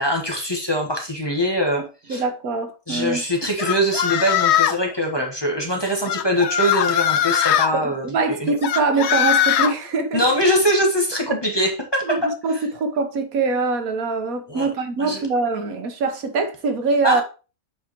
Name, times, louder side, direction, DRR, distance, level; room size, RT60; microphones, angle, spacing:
voice 1, 0.0-2.2 2.9-8.5 10.1-12.2 12.5-12.7 14.5-14.7 15.0-15.3 17.0-17.2, equal, 20° left, 1.2 m, -23 dB
voice 2, 2.1-3.2 7.7-10.2 11.6-11.7 12.1-12.2 12.4-17.2, right 4 dB, 85° right, 1.5 m, -23 dB
sound 1, 3.6-4.9 6.1-7.7 8.6-9.7, left 10 dB, 65° left, 0.7 m, -20 dB
8.0 x 4.8 x 3.0 m
omnidirectional pair, 1.4 m